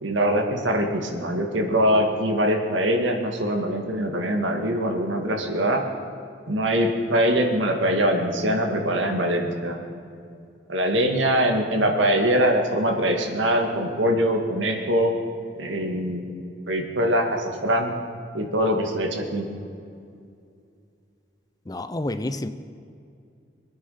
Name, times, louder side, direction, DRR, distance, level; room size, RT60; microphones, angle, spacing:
voice 1, 0.0-5.8 6.5-9.8 10.7-15.1 15.6-16.2 16.7-17.9 18.3-19.5, equal, 90° right, 3 dB, 2.1 m, -23 dB
voice 2, 21.7-22.5, left 1 dB, 20° left, 11 dB, 0.6 m, -29 dB
25.0 x 9.6 x 5.8 m, 2.4 s
head